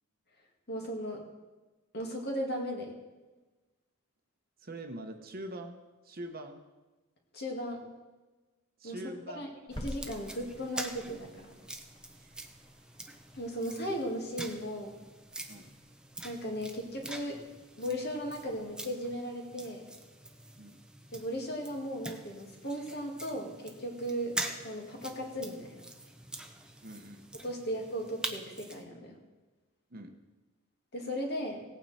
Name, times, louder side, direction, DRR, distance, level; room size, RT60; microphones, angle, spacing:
voice 1, 0.7-1.2 1.9-2.9 7.3-7.8 8.8-9.0 9.3-9.5 9.8-11.5 13.3-15.0 16.2-17.4 17.8-19.9 21.1-24.3 24.6-25.8 27.4-29.2 30.9-31.7, equal, 50° left, 1 dB, 2.2 m, -36 dB
voice 2, 4.6-5.8 6.0-6.6 8.8-9.5 12.2-12.3 15.5-15.7 20.6-20.8 26.8-27.2 29.9-30.1, right 1 dB, 45° right, 5 dB, 1.0 m, -43 dB
sound 1, 9.7-19.0, equal, 20° left, 1.3 m, -51 dB
sound 2, 9.7-28.8, right 1 dB, 5° right, 0.7 m, -45 dB
17.0 x 8.9 x 4.3 m, 1.2 s
head